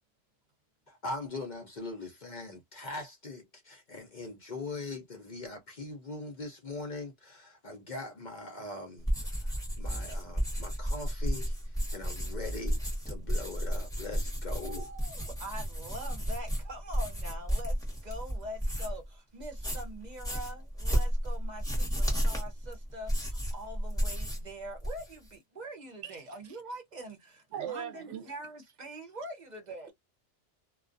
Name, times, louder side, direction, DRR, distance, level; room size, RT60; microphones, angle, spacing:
voice 1, 0.9-14.9, left 2 dB, 50° left, 0.6 m, -41 dB
sound 1, 9.0-19.1 19.4-24.5 24.8-25.3, equal, 5° left, 0.9 m, -32 dB
voice 2, 14.6-29.9, right 1 dB, 45° right, 0.7 m, -44 dB
voice 3, 27.5-28.3, right 9 dB, 75° right, 0.9 m, -38 dB
2.3 x 2.2 x 2.4 m
omnidirectional pair, 1.2 m